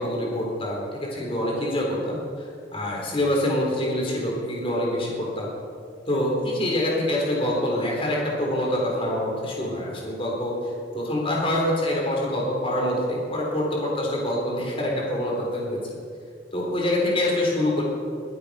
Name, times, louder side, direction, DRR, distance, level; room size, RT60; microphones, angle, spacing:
voice 1, 0.0-5.5 6.1-16.0 16.5-17.8, left 1 dB, 30° left, -2 dB, 3.5 m, -26 dB
21.5 x 8.5 x 5.4 m, 2.2 s
head